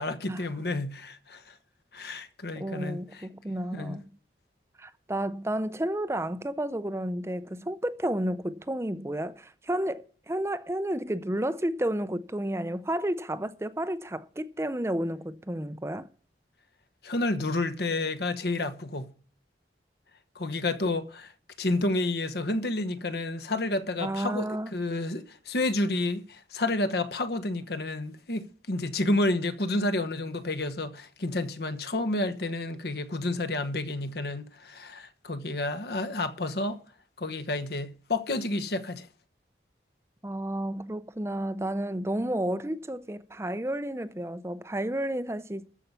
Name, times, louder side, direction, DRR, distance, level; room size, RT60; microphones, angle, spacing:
voice 1, 0.0-1.6 1.9-3.3 3.7-4.0 17.0-19.1 20.3-21.3 21.6-36.8 37.2-39.1, left 2 dB, 60° left, 1.1 m, -30 dB
voice 2, 2.6-4.0 4.8-16.1 24.0-24.7 40.2-45.6, right 1 dB, 15° right, 0.6 m, -31 dB
13.5 x 5.6 x 8.1 m
head